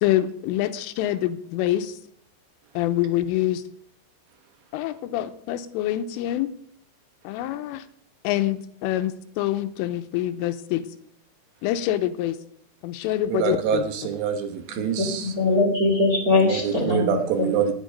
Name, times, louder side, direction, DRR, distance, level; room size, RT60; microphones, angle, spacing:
voice 1, 0.0-2.0 2.7-3.6 4.7-6.5 7.2-7.8 8.2-10.8 11.6-12.4 12.8-13.8, left 13 dB, 85° left, 10 dB, 3.3 m, -26 dB
voice 2, 13.3-15.3 16.5-17.7, right 7 dB, 70° right, 6 dB, 2.9 m, -25 dB
voice 3, 14.7-17.5, left 2 dB, 35° right, 0 dB, 1.4 m, -22 dB
17.0 x 10.0 x 5.2 m, 0.66 s
omnidirectional pair, 5.7 m